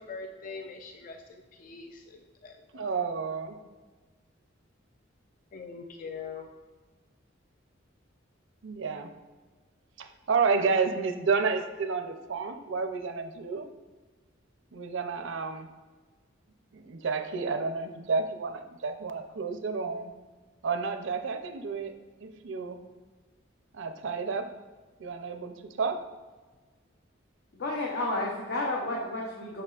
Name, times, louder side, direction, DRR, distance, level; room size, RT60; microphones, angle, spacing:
voice 1, 0.0-2.9 5.5-6.5, left 4 dB, 45° left, 4 dB, 0.4 m, -43 dB
voice 2, 2.7-3.6 8.6-9.1 10.0-13.7 14.7-15.7 16.7-20.1 20.6-21.9 22.2-22.8 23.7-24.5 25.0-26.0, right 4 dB, 65° right, 8 dB, 0.5 m, -30 dB
voice 3, 27.5-29.6, left 2 dB, 60° left, -2 dB, 0.8 m, -31 dB
6.7 x 5.8 x 2.4 m, 1.3 s
head